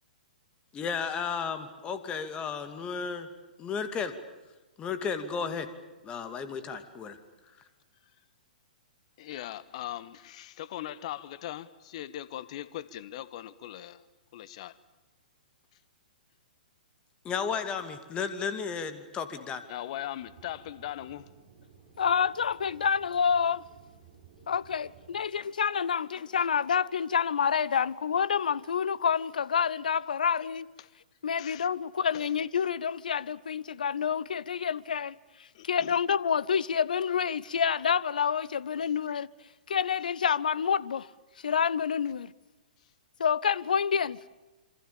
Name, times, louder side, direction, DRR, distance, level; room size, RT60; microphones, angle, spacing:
voice 1, 0.7-3.3 3.6-4.1 4.8-5.7 6.0-7.2 17.2-19.6, left 6 dB, 20° left, 2.7 m, -33 dB
voice 2, 9.2-14.0 14.3-14.8 19.7-21.2 30.8-30.9 31.4-31.7 32.1-32.3 35.5-36.0, left 12 dB, 50° left, 1.4 m, -40 dB
Aircraft / Engine, 20.2-25.2, right 6 dB, 50° right, 7.3 m, -56 dB
voice 3, 22.0-23.6 24.5-30.7 31.2-35.2 35.6-39.3 39.7-41.1 41.4-42.3 43.2-44.2, left 7 dB, 70° left, 0.9 m, -28 dB
27.5 x 26.0 x 7.1 m
figure-of-eight pair, 115°, 5 cm